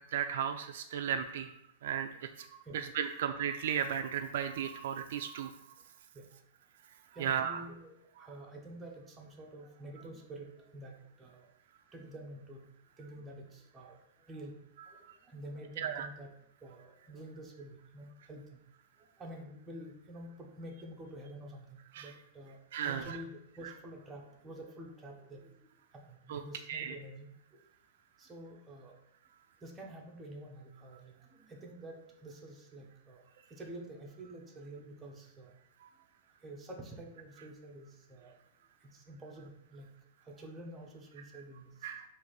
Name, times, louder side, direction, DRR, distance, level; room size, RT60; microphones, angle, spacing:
voice 1, 0.1-1.5 1.8-2.1 2.4-2.5 2.7-5.5 7.2-7.6 15.8-16.1 22.0-22.1 22.7-23.2 26.3-26.4 26.7-26.9 41.8-42.1, right 8 dB, 65° right, 7 dB, 0.3 m, -34 dB
voice 2, 7.1-11.5 11.9-12.6 13.0-14.6 14.9-16.3 16.6-18.6 19.0-22.6 22.8-25.5 25.9-27.6 28.2-29.0 29.6-33.2 33.5-35.5 36.4-38.4 38.8-39.9 40.2-41.9, right 1 dB, 10° right, -1 dB, 0.6 m, -49 dB
3.9 x 2.5 x 4.7 m, 0.76 s
supercardioid pair, 170°, 0 cm